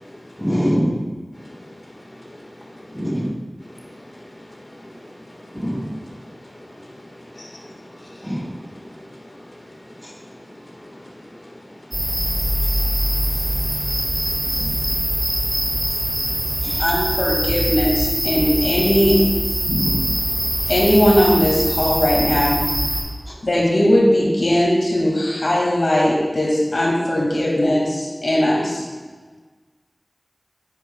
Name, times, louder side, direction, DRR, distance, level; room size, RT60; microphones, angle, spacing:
voice 1, 0.4-1.0 2.9-3.3 5.5-5.8 8.2-8.4 10.0-10.1 16.6-17.0 19.7-20.0 23.3-23.4, equal, ahead, -4 dB, 1.7 m, -23 dB
voice 2, 7.3-7.8 8.0-8.3 14.6-14.8 15.7-15.8 16.2-16.5, left 1 dB, 50° left, -2 dB, 1.7 m, -42 dB
sound 1, 11.9-23.0, right 1 dB, 50° right, 2.6 m, -22 dB
voice 3, 16.8-19.2 20.7-22.6 23.4-28.8, left 1 dB, 80° left, -3 dB, 2.2 m, -18 dB
10.0 x 8.2 x 2.4 m, 1.4 s
wide cardioid pair, 55°, 0 cm